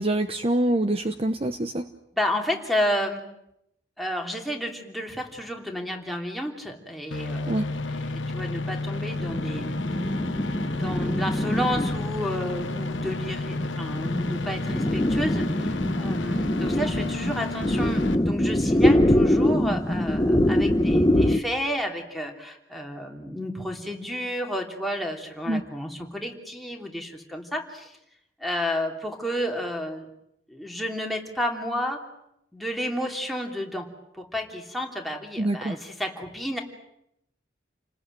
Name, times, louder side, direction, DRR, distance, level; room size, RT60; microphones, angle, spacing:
voice 1, 0.0-1.9 7.5-7.7 25.5-25.6 35.4-35.8, right 1 dB, 30° right, 9 dB, 0.9 m, -25 dB
voice 2, 2.1-3.2 4.0-28.0 28.4-30.1 30.5-32.0 32.5-33.9 34.1-36.6, equal, ahead, 1 dB, 3.1 m, -31 dB
sound 1, 7.1-18.1, left 2 dB, 80° left, 1.2 m, -32 dB
sound 2, 9.2-21.4, left 1 dB, 20° left, 1.0 m, -24 dB
29.5 x 20.0 x 9.1 m, 0.81 s
head